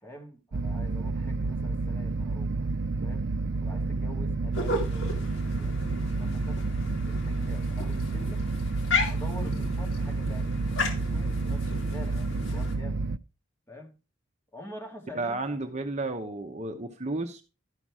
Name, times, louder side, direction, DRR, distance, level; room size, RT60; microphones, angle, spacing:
voice 1, 0.0-2.7 3.0-3.3 3.6-5.7 6.2-6.7 7.0-8.4 9.1-13.0 13.7-14.0 14.5-15.4, equal, 10° left, 2.0 m, -46 dB
sound 1, 0.5-13.2, right 3 dB, 60° right, 0.5 m, -30 dB
sound 2, 4.5-12.8, left 3 dB, 75° left, 2.5 m, -35 dB
voice 2, 15.1-17.4, right 2 dB, 35° right, 0.9 m, -32 dB
12.5 x 5.9 x 4.8 m
head